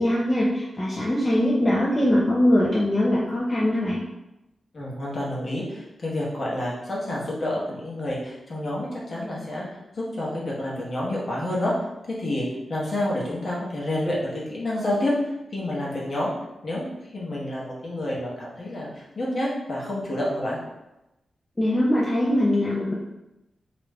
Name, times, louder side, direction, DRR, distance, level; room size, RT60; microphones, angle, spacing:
voice 1, 0.0-4.0 21.6-22.9, left 1 dB, 15° left, -6 dB, 0.3 m, -22 dB
voice 2, 4.7-9.6 10.0-11.7 12.1-12.4 12.7-15.1 15.5-16.3 16.6-20.6, left 1 dB, 40° left, -5 dB, 0.7 m, -29 dB
2.4 x 2.1 x 3.3 m, 0.94 s
wide cardioid pair, 175°, 0 cm